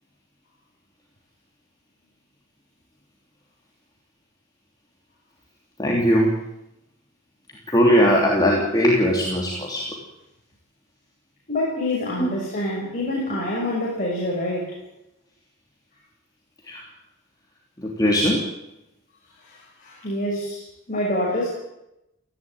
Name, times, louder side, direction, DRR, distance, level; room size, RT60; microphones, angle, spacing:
voice 1, 5.8-6.4 7.7-10.0 12.2-12.3 16.7-16.8 17.8-18.5, equal, 20° left, -2 dB, 3.1 m, -20 dB
voice 2, 11.5-14.8 19.5-20.6 20.9-21.5, left 1 dB, 35° left, -4 dB, 6.7 m, -26 dB
18.5 x 16.0 x 9.3 m, 0.88 s
head